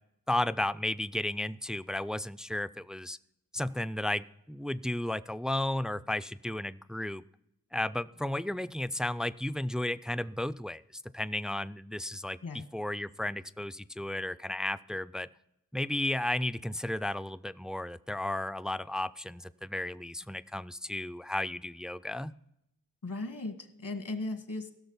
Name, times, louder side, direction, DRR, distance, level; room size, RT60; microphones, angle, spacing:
voice 1, 0.3-3.2 3.5-7.2 7.7-10.8 11.1-12.4 12.7-15.3 15.7-22.3, left 1 dB, ahead, 15 dB, 0.3 m, -33 dB
voice 2, 23.0-24.7, left 2 dB, 65° left, 9 dB, 1.4 m, -37 dB
16.0 x 6.5 x 5.5 m, 0.80 s
cardioid pair, 60°, 34 cm